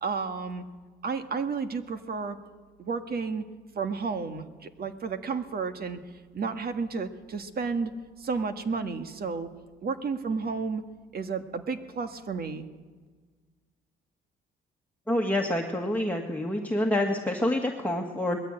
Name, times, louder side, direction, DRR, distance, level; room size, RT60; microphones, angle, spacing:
voice 1, 0.0-0.6 1.0-2.4 2.8-3.4 3.8-6.0 6.3-7.9 8.2-9.5 9.8-10.8 11.1-12.7, right 5 dB, 50° right, 8 dB, 1.7 m, -32 dB
voice 2, 15.1-18.4, left 1 dB, 10° left, 1 dB, 1.8 m, -27 dB
20.5 x 14.0 x 9.0 m, 1.5 s
cardioid pair, 90°, 20 cm